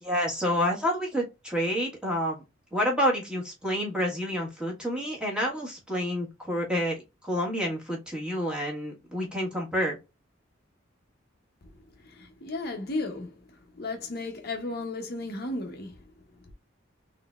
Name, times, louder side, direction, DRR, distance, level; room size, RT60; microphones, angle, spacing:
voice 1, 0.0-2.4 2.7-7.0 7.2-10.0, equal, 5° right, 1.4 m, -28 dB
voice 2, 12.0-16.0 16.4-16.5, left 2 dB, 50° left, 0.8 m, -35 dB
3.9 x 3.2 x 2.4 m
head